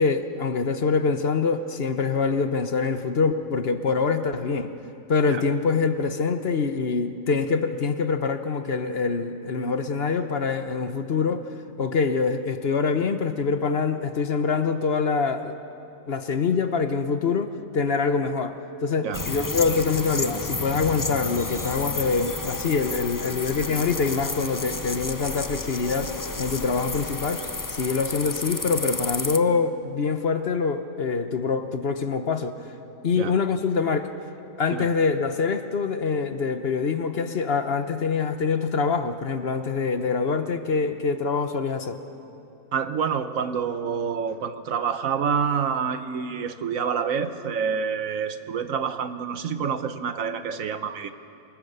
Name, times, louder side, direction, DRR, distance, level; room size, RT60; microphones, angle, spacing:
voice 1, 0.0-4.7 5.1-11.4 11.8-15.5 16.1-27.4 27.7-32.6 33.0-34.1 34.6-42.0, left 5 dB, 50° left, 9 dB, 1.1 m, -25 dB
sound 1, 19.1-29.4, left 3 dB, 25° left, 0.4 m, -31 dB
Piano, 19.9-24.8, left 1 dB, 70° left, 5.2 m, -47 dB
voice 2, 42.7-51.1, right 6 dB, 70° right, 10 dB, 1.3 m, -27 dB
27.5 x 19.5 x 6.8 m, 2.9 s
omnidirectional pair, 1.5 m